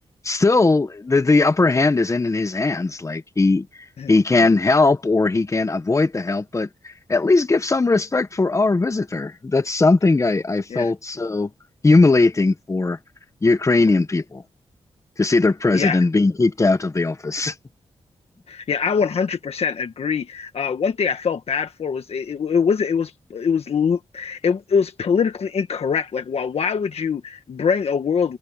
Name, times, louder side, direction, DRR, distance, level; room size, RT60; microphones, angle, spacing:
voice 1, 0.2-3.7 4.1-11.5 11.8-13.0 13.4-14.4 15.2-17.5, left 3 dB, 25° left, 1.3 m, -19 dB
voice 2, 15.7-16.1 18.5-28.4, left 6 dB, 65° left, 1.5 m, -23 dB
wide cardioid pair, 110°, 11 cm